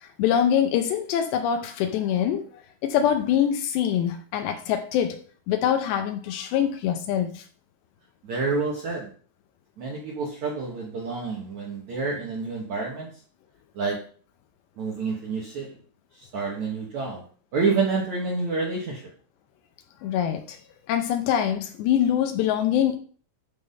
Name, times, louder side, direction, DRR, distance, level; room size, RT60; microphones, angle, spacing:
voice 1, 0.0-2.5 2.8-5.2 5.5-7.4 20.0-20.6 20.9-23.0, left 9 dB, 80° left, 2.7 m, -24 dB
voice 2, 8.2-9.1 9.8-13.1 13.8-14.0 14.8-15.7 16.3-17.2 17.5-19.0, right 4 dB, 70° right, 1.8 m, -28 dB
12.0 x 4.1 x 5.4 m
omnidirectional pair, 5.4 m